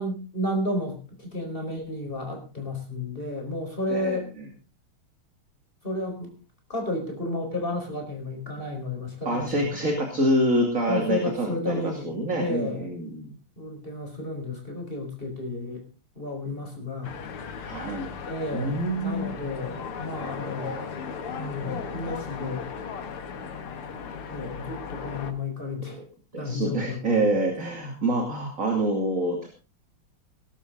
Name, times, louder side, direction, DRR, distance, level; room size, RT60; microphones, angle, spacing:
voice 1, 0.0-4.3 5.8-6.3 6.7-9.8 10.9-12.1 12.4-12.9 13.6-15.8 16.2-17.1 18.3-20.7 21.4-22.7 24.3-26.0 26.4-27.2, left 2 dB, 25° left, 3 dB, 5.2 m, -32 dB
voice 2, 3.9-4.5 9.2-13.3 17.6-18.1 18.5-19.3 25.8-26.0 26.3-29.5, right 1 dB, 35° right, 2 dB, 3.0 m, -26 dB
sound 1, 17.0-25.3, left 6 dB, 80° left, 2.5 m, -36 dB
20.0 x 11.5 x 3.9 m, 0.33 s
omnidirectional pair, 2.4 m